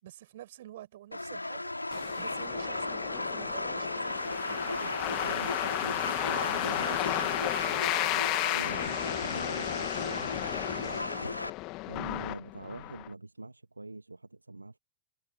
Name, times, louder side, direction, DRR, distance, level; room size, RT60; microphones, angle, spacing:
voice 1, 0.0-1.7 2.2-4.9 6.2-8.3, right 13 dB, 55° right, 7.9 m, -48 dB
sound 1, 1.1-11.5, left 2 dB, 85° left, 3.1 m, -35 dB
sound 2, 1.9-13.1, left 22 dB, 40° left, 1.9 m, -34 dB
voice 2, 5.2-7.1 8.5-11.1 11.8-14.8, right 2 dB, 80° right, 2.1 m, -44 dB
figure-of-eight pair, 90°, 0 cm